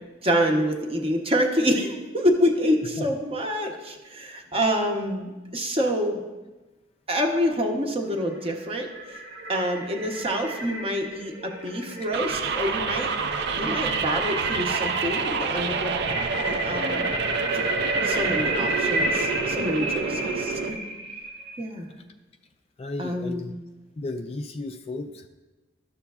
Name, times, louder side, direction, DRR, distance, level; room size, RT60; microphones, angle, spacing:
voice 1, 0.2-6.2 7.1-9.2 9.5-13.1 13.6-17.2 18.0-20.8 21.6-21.9 23.0-23.4, equal, 30° right, 2 dB, 0.8 m, -27 dB
sound 1, 8.2-21.6, right 1 dB, 80° right, 1.4 m, -32 dB
sound 2, 12.1-20.7, right 5 dB, 60° right, 0.4 m, -28 dB
voice 2, 22.8-23.5 24.0-25.3, left 2 dB, 30° left, 5 dB, 0.3 m, -34 dB
12.5 x 6.9 x 2.4 m, 1.2 s
head